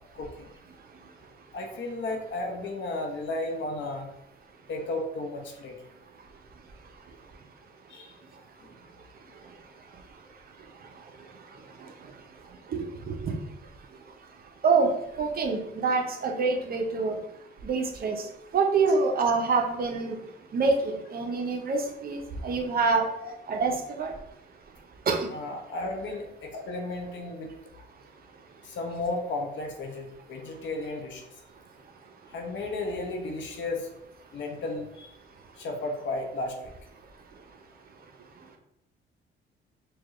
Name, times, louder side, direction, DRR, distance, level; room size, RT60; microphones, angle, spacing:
voice 1, 0.1-0.5 1.5-4.1 4.7-5.8 7.9-8.1 8.6-8.7 23.2-23.3 25.3-27.5 28.6-31.3 32.3-33.9 34.3-35.1 35.6-36.7, left 2 dB, 70° left, 2 dB, 0.8 m, -34 dB
voice 2, 12.7-13.3 14.6-14.9 15.2-17.2 17.6-18.2 18.5-20.2 20.5-23.1 23.5-24.1 25.1-25.3, right 4 dB, 50° right, 3 dB, 0.7 m, -26 dB
4.7 x 2.3 x 3.0 m, 0.79 s
cardioid pair, 90°, 20 cm